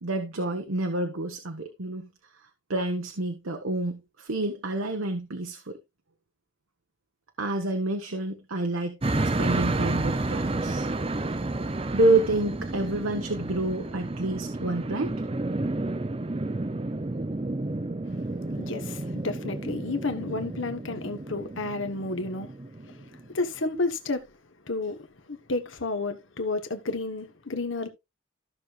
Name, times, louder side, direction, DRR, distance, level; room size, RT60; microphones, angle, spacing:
voice 1, 0.0-2.1 2.7-5.7 7.4-9.0 9.4-10.9 11.9-15.1 18.5-18.7, right 2 dB, 85° right, 1.2 m, -28 dB
sound 1, 9.0-23.3, right 2 dB, 25° right, 0.6 m, -31 dB
voice 2, 18.5-22.5 22.8-24.3 24.7-27.9, left 3 dB, 70° left, 1.3 m, -31 dB
14.5 x 6.5 x 2.5 m
head